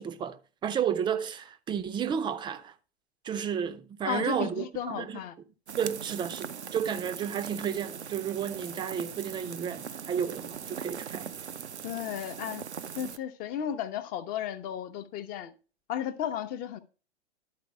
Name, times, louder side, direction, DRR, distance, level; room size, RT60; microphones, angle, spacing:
voice 1, 0.0-2.7 3.2-5.2 5.8-11.4, right 8 dB, 15° right, 0.6 m, -32 dB
voice 2, 4.0-5.3 11.8-12.7 13.0-15.5 15.9-16.8, left 9 dB, 25° left, 0.8 m, -34 dB
sound 1, 5.7-13.2, right 7 dB, 80° right, 0.6 m, -40 dB
12.0 x 4.6 x 4.4 m
figure-of-eight pair, 105°, 33 cm